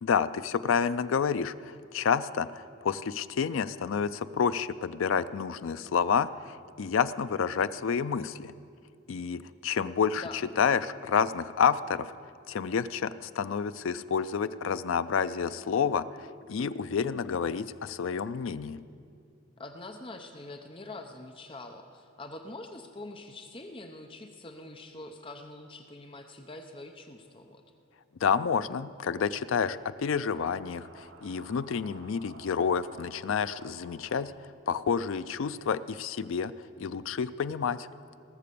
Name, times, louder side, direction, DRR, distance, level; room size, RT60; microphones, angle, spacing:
voice 1, 0.0-8.5 9.1-10.2 10.6-12.1 12.5-18.8 28.2-34.3 34.7-36.5 36.8-37.9, left 6 dB, 75° left, 14 dB, 0.4 m, -29 dB
voice 2, 19.6-27.6, left 2 dB, 25° left, 5 dB, 0.6 m, -44 dB
sound 1, 30.0-35.2, right 3 dB, 70° right, 1.2 m, -55 dB
19.0 x 6.8 x 6.9 m, 2.4 s
head